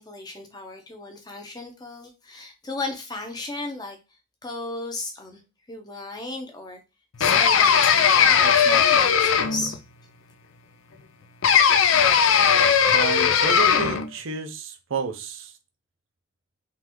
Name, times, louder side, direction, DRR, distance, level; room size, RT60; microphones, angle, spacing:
voice 1, 0.0-5.4 5.7-6.8 7.2-9.8, left 2 dB, 20° left, 3 dB, 0.8 m, -35 dB
sound 1, 7.2-9.8 11.4-14.1, left 7 dB, 75° left, 0.4 m, -18 dB
voice 2, 12.9-15.5, right 5 dB, 75° right, 6 dB, 0.6 m, -31 dB
3.9 x 3.2 x 3.0 m, 0.27 s
head